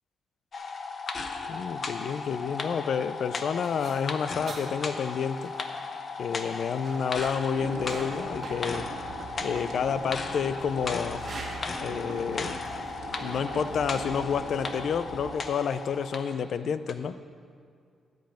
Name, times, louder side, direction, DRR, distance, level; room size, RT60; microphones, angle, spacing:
sound 1, 0.5-16.4 16.9-17.0, left 4 dB, 35° left, 0.8 m, -36 dB
voice 1, 1.5-5.5 6.2-8.9 9.4-11.2 11.8-12.6 13.2-17.2, left 7 dB, 50° left, 13 dB, 0.4 m, -29 dB
sound 2, 2.9-15.2, right 2 dB, 30° right, 1.4 m, -46 dB
sound 3, 7.5-15.3, right 5 dB, 85° right, 1.6 m, -41 dB
13.0 x 5.4 x 9.1 m, 2.4 s
wide cardioid pair, 170°, 0 cm